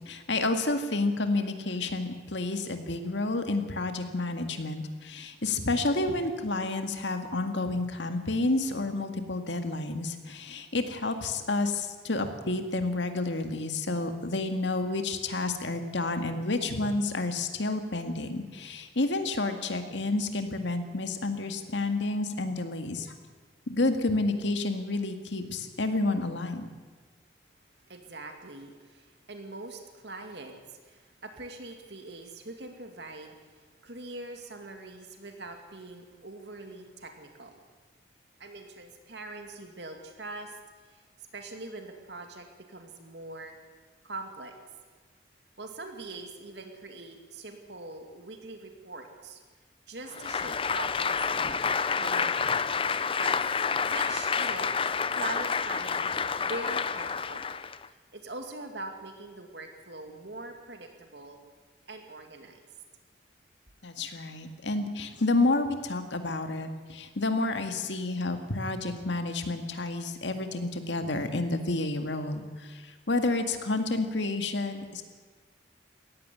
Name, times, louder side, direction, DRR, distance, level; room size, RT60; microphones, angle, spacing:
voice 1, 0.0-23.1 23.7-26.7 63.8-75.0, left 2 dB, 80° left, 7 dB, 2.0 m, -30 dB
voice 2, 27.9-37.6 38.4-40.6 40.9-41.0 41.3-43.5 44.0-44.5 45.6-49.4 49.9-51.6 51.9-52.4 53.1-53.4 53.9-57.5 57.9-61.4 61.9-62.6, right 2 dB, 65° right, 5 dB, 2.4 m, -43 dB
Applause, 50.1-57.9, left 6 dB, 30° left, 0.6 m, -29 dB
18.0 x 15.0 x 9.8 m, 1.5 s
head